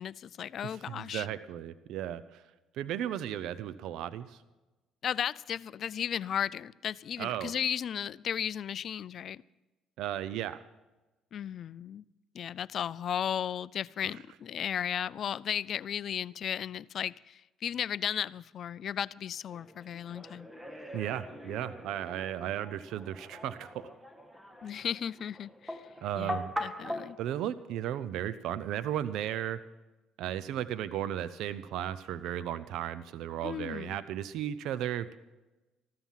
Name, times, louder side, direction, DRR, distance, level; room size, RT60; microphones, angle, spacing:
voice 1, 0.0-1.3 5.0-9.4 11.3-12.0 12.3-20.5 24.6-25.8 26.2-27.2 33.4-34.0, left 9 dB, 55° left, 21 dB, 0.4 m, -35 dB
voice 2, 0.6-2.4 2.7-4.4 7.2-7.5 10.0-10.6 20.9-23.9 26.0-26.5 26.8-29.6 30.2-35.2, right 11 dB, 75° right, 15 dB, 0.6 m, -35 dB
sound 1, 19.5-27.1, left 1 dB, 5° right, 1.7 m, -42 dB
15.0 x 13.0 x 5.7 m, 1.1 s
cardioid pair, 90°, 0 cm